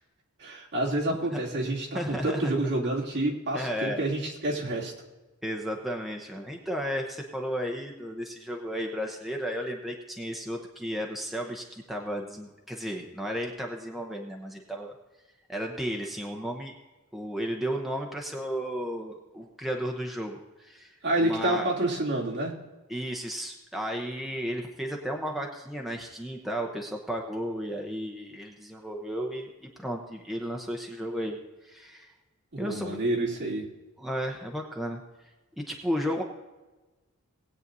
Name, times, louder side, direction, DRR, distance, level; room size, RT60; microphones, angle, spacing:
voice 1, 0.4-4.9 21.0-22.5 32.5-33.6, right 1 dB, 50° right, -4 dB, 2.8 m, -28 dB
voice 2, 1.9-2.5 3.5-4.0 5.4-14.9 15.5-16.8 17.1-21.7 22.9-32.1 32.6-33.0 34.0-35.0 35.7-36.2, equal, ahead, 0 dB, 0.9 m, -34 dB
19.5 x 8.8 x 2.7 m, 1.2 s
head